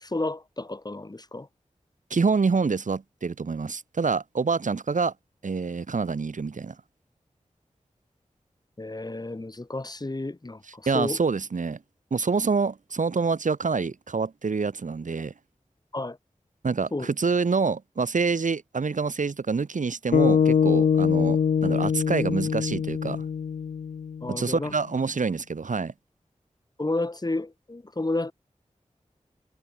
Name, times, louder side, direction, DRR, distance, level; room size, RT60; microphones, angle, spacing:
voice 1, 0.0-1.5 8.8-11.2 15.9-16.2 16.9-17.1 24.2-24.7 26.8-28.3, left 2 dB, 30° left, 2.1 m, -31 dB
voice 2, 2.1-5.1 5.4-6.7 10.7-11.8 12.1-15.3 16.6-23.2 24.3-25.9, right 4 dB, 85° right, 3.1 m, -26 dB
sound 1, 20.1-24.5, left 7 dB, 90° left, 0.4 m, -23 dB
wide cardioid pair, 60°, 13 cm